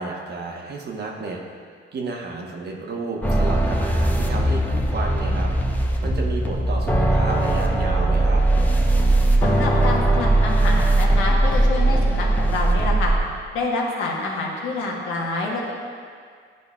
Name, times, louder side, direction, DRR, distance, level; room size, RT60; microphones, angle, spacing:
voice 1, 0.0-1.4 1.9-5.5 6.0-8.4, right 3 dB, 55° right, 0 dB, 1.1 m, -31 dB
sound 1, 3.2-13.2, right 1 dB, 10° left, 0.7 m, -19 dB
voice 2, 9.4-13.1 13.5-15.7, left 3 dB, 90° left, -2 dB, 1.2 m, -27 dB
11.0 x 5.1 x 2.3 m, 2.1 s
cardioid pair, 90°, 20 cm